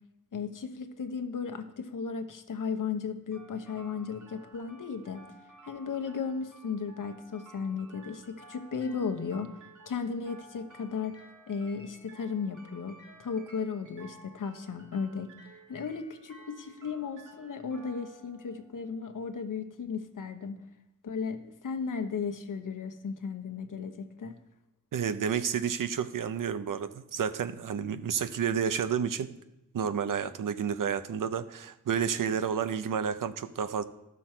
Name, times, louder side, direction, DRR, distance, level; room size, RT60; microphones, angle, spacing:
voice 1, 0.3-5.2 5.6-9.6 9.9-11.2 11.5-15.3 15.7-20.6 21.0-24.4, left 5 dB, 75° left, 8 dB, 1.0 m, -35 dB
sound 1, 3.3-19.3, right 2 dB, 65° right, 2.4 m, -54 dB
voice 2, 24.9-29.3 29.7-33.8, right 7 dB, 85° right, 12 dB, 0.7 m, -30 dB
13.0 x 6.2 x 4.5 m, 0.91 s
cardioid pair, 55°, 32 cm